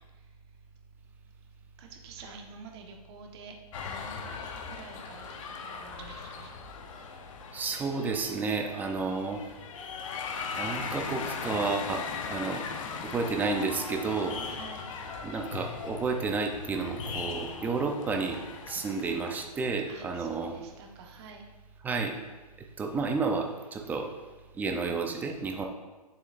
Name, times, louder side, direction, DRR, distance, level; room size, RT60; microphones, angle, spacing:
voice 1, 1.8-3.5 3.8-5.3 5.6-6.5 14.2-14.9 19.9-21.4, right 4 dB, 40° right, 2 dB, 1.3 m, -47 dB
sound 1, 3.7-19.4, left 5 dB, 50° left, 0.9 m, -39 dB
voice 2, 7.5-9.4 10.6-12.6 13.0-14.3 15.2-18.4 18.7-20.5 21.8-22.2 22.8-24.1 24.5-25.7, right 4 dB, 10° right, 3 dB, 0.6 m, -31 dB
9.1 x 7.0 x 2.6 m, 1.2 s
hypercardioid pair, 145°, 20 cm